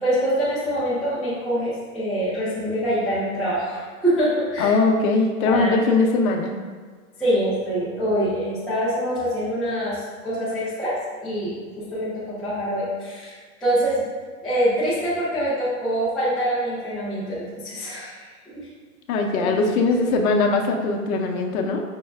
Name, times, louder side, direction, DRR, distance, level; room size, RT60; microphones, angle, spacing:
voice 1, 0.0-4.8 5.5-5.8 7.2-13.3 13.6-14.1 14.4-18.2 18.5-18.7 19.3-19.6, equal, ahead, -12 dB, 0.4 m, -25 dB
voice 2, 4.6-6.5 19.1-21.8, left 3 dB, 70° left, 2 dB, 0.6 m, -20 dB
5.2 x 2.1 x 3.3 m, 1.5 s
hypercardioid pair, 135°, 44 cm